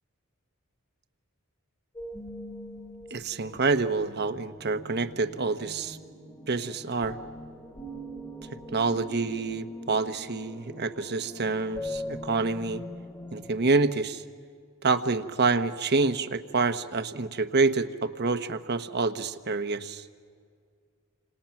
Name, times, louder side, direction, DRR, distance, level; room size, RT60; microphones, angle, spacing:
sound 1, 2.0-13.6, left 1 dB, 15° left, 1.7 m, -42 dB
voice 1, 3.1-6.0 6.5-7.2 8.7-12.8 13.3-14.2 14.8-20.0, right 3 dB, 50° right, 10 dB, 1.1 m, -27 dB
30.0 x 26.5 x 5.9 m, 2.1 s
head